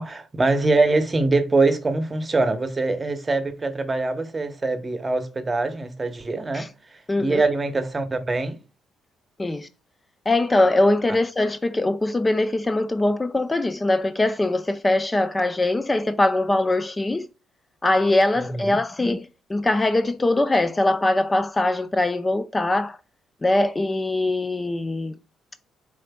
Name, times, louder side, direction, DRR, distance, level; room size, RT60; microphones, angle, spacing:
voice 1, 0.0-8.6 18.4-18.7, right 3 dB, 25° right, 0.8 m, -23 dB
voice 2, 7.1-7.4 9.4-9.7 10.3-17.3 17.8-23.0 23.4-25.1, left 2 dB, 20° left, 0.4 m, -22 dB
7.4 x 2.5 x 2.2 m
hypercardioid pair, 55°, 0 cm